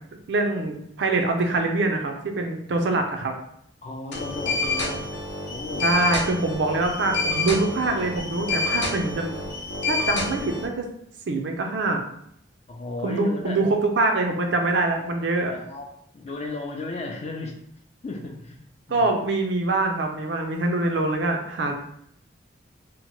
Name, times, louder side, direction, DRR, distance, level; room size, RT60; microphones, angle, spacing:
voice 1, 0.3-3.4 5.8-9.4 9.9-10.9 11.3-12.0 13.0-15.5 18.9-21.7, right 2 dB, 70° right, 3 dB, 0.4 m, -24 dB
voice 2, 3.8-5.0 5.5-6.1 8.8-8.9 12.7-13.6 15.5-15.9 16.1-17.5 18.0-18.6 18.9-19.1, left 2 dB, 35° left, 2 dB, 0.4 m, -34 dB
sound 1, 4.1-10.7, left 3 dB, 70° left, 0.7 m, -28 dB
2.9 x 2.1 x 3.0 m, 0.71 s
head